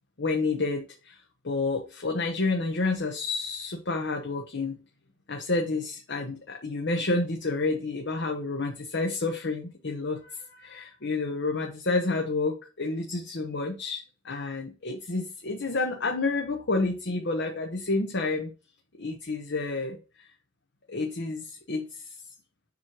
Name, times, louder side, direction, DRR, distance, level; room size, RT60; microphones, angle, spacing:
voice 1, 0.2-1.2 1.4-4.7 5.3-18.5 19.0-20.3 20.9-22.1, left 3 dB, 55° left, 0.9 m, -29 dB
7.4 x 3.1 x 5.9 m
head